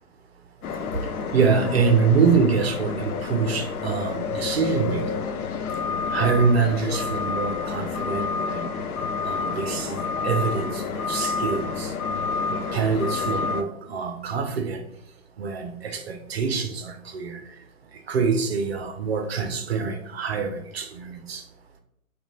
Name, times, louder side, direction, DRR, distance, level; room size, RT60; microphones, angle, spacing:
sound 1, 0.6-13.6, left 5 dB, 80° left, 0.5 m, -29 dB
voice 1, 1.3-5.1 6.1-8.7 9.2-11.9 12.5-14.8 15.4-17.4 18.1-21.4, right 5 dB, 45° right, 6 dB, 0.5 m, -25 dB
2.9 x 2.3 x 3.9 m, 0.75 s
hypercardioid pair, 145°, 44 cm